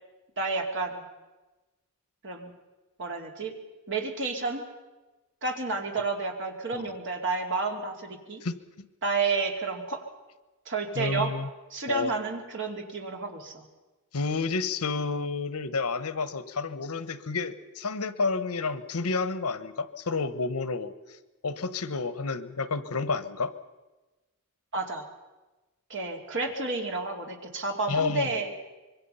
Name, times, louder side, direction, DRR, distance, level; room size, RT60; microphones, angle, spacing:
voice 1, 0.4-1.0 2.2-2.5 3.0-3.5 3.9-4.6 5.4-8.4 9.0-10.0 10.7-11.3 11.7-13.7 24.7-25.1 25.9-28.5, right 3 dB, 55° right, 2 dB, 2.8 m, -31 dB
voice 2, 8.4-8.9 10.9-11.5 11.9-12.1 14.1-20.9 21.4-23.5 27.9-28.3, left 4 dB, 80° left, 13 dB, 1.1 m, -30 dB
25.5 x 22.5 x 5.6 m, 1.1 s
head